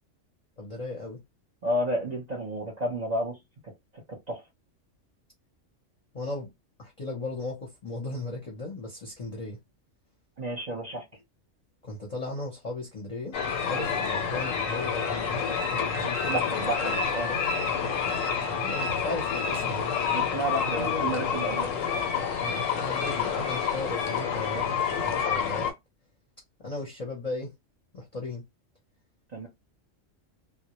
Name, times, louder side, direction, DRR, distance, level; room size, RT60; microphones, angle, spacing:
voice 1, 0.6-1.2 6.1-6.5 6.8-9.6 11.8-16.5 16.8-16.9 18.6-20.0 20.7-21.1 22.4-25.7 26.6-27.5 27.9-28.4, left 2 dB, 40° left, 0.7 m, -36 dB
voice 2, 1.6-3.4 3.9-4.4 10.4-11.0 16.3-17.4 20.1-21.7 29.3-29.5, right 1 dB, 40° right, 0.7 m, -31 dB
sound 1, 13.3-25.7, left 6 dB, 85° left, 1.0 m, -28 dB
2.1 x 2.1 x 2.9 m
omnidirectional pair, 1.3 m